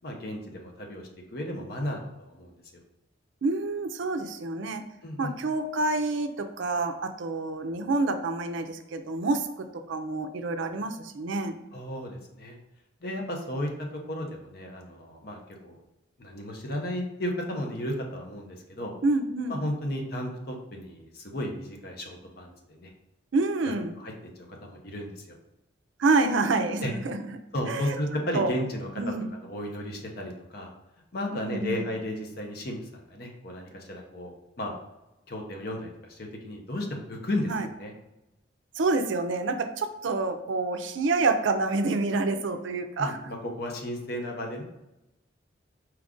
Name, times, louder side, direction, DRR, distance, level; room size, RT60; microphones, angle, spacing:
voice 1, 0.0-2.6 5.0-5.3 11.7-12.6 13.0-13.7 14.1-15.8 16.2-18.9 19.5-22.9 24.0-25.4 26.8-26.9 27.5-28.9 29.4-30.7 31.1-34.3 34.6-34.8 35.3-37.9 43.0-44.6, left 1 dB, 50° left, 1 dB, 0.8 m, -34 dB
voice 2, 3.4-4.8 5.2-11.6 19.0-19.6 23.3-24.0 26.0-27.2 27.7-28.0 28.3-28.5 29.0-29.3 31.3-31.8 37.5-37.7 38.7-43.2, right 3 dB, 75° right, 8 dB, 0.4 m, -27 dB
4.5 x 2.5 x 3.6 m, 0.95 s
head